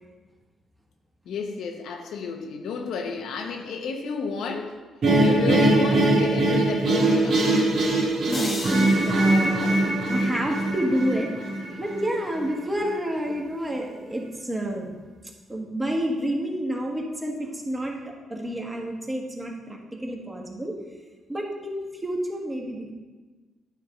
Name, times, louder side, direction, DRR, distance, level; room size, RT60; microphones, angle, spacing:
voice 1, 1.2-4.8 5.1-7.8, left 4 dB, 75° left, 4 dB, 0.9 m, -32 dB
sound 1, 5.0-12.1, right 2 dB, 55° right, 1.9 m, -22 dB
sound 2, 8.3-10.6, left 1 dB, 30° left, 1.5 m, -37 dB
voice 2, 8.3-11.3 11.7-14.9 15.5-20.7 21.3-22.9, equal, 15° right, 0 dB, 1.5 m, -29 dB
9.2 x 3.5 x 6.0 m, 1.3 s
cardioid pair, 90°, 0 cm